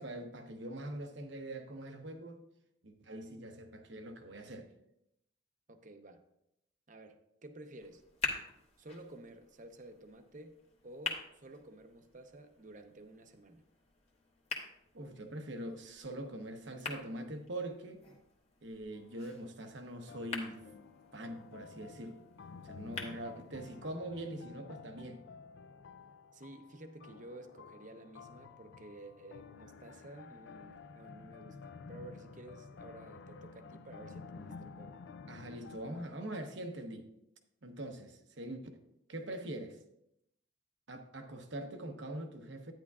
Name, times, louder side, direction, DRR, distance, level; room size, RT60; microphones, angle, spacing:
voice 1, 0.0-2.4 2.8-4.7 14.9-18.0 18.6-20.6 21.1-22.2 22.6-25.2 35.3-37.1 37.6-38.7 39.1-39.8 40.9-42.7, right 1 dB, 70° right, 5 dB, 1.0 m, -43 dB
voice 2, 5.7-6.2 6.9-8.0 8.8-10.6 10.8-13.6 26.3-35.0, right 1 dB, 40° right, 7 dB, 0.7 m, -52 dB
sound 1, 7.8-23.8, left 3 dB, 35° left, 1.2 m, -46 dB
sound 2, 18.9-19.4 20.1-36.0, left 5 dB, 65° left, 0.4 m, -52 dB
10.5 x 9.6 x 2.4 m, 0.82 s
head